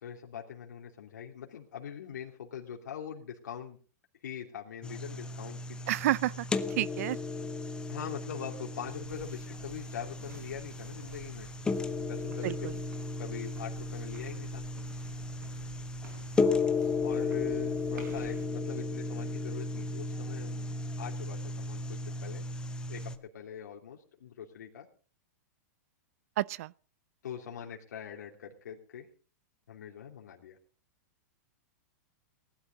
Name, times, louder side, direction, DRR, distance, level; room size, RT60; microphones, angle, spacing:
voice 1, 0.0-3.8 4.2-5.9 7.9-11.5 11.9-12.7 13.2-14.6 17.0-22.4 22.9-24.9 27.2-29.1 29.7-30.6, left 8 dB, 90° left, 2.9 m, -43 dB
sound 1, 4.8-23.2, left 3 dB, 10° left, 0.9 m, -35 dB
voice 2, 5.9-7.2 12.4-12.7 26.4-26.7, right 15 dB, 55° right, 0.5 m, -30 dB
sound 2, 8.8-18.5, right 5 dB, 80° right, 4.8 m, -51 dB
19.0 x 11.5 x 4.0 m
supercardioid pair, 155°, 9 cm